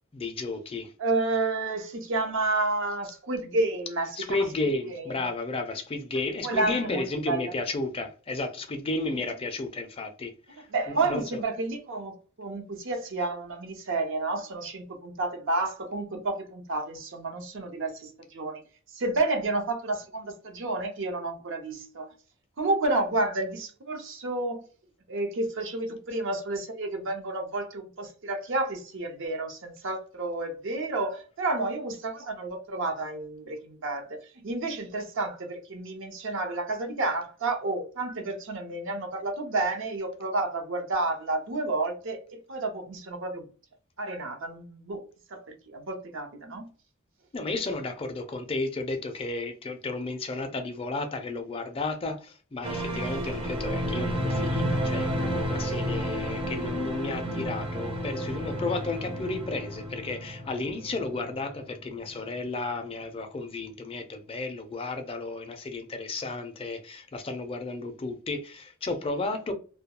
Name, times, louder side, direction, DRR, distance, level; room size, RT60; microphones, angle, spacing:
voice 1, 0.1-0.9 4.2-11.4 47.3-69.5, left 3 dB, 25° left, 0.4 m, -33 dB
voice 2, 1.0-5.3 6.4-7.5 9.1-9.3 10.6-18.6 18.9-22.1 22.6-24.7 25.1-43.4 44.0-45.1 45.3-46.7, right 2 dB, 65° right, 0.6 m, -30 dB
sound 1, 52.6-61.8 62.1-62.2, equal, 25° right, 0.5 m, -31 dB
2.2 x 2.2 x 2.8 m
head